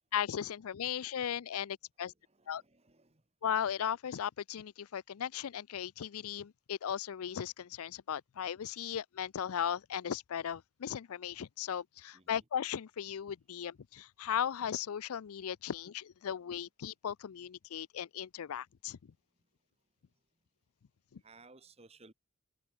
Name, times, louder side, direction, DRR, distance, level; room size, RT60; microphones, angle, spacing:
voice 1, 0.1-2.1 2.5-2.6 3.4-19.0 21.1-21.2, left 8 dB, 90° left, 0.4 m, -37 dB
voice 2, 2.4-3.2 12.1-12.4 21.2-22.1, right 3 dB, 30° right, 1.7 m, -59 dB
head